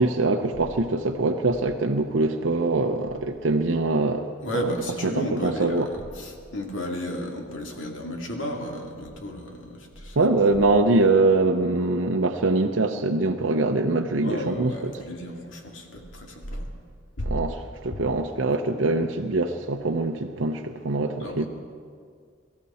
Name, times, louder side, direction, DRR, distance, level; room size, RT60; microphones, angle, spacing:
voice 1, 0.0-4.3 5.0-5.9 10.2-14.9 17.2-21.4, right 2 dB, 90° right, 4 dB, 0.7 m, -23 dB
voice 2, 4.4-10.5 14.2-16.7 17.2-17.3 17.9-18.0 21.2-21.5, equal, 80° left, 1 dB, 2.2 m, -33 dB
23.5 x 13.5 x 4.2 m, 2.1 s
head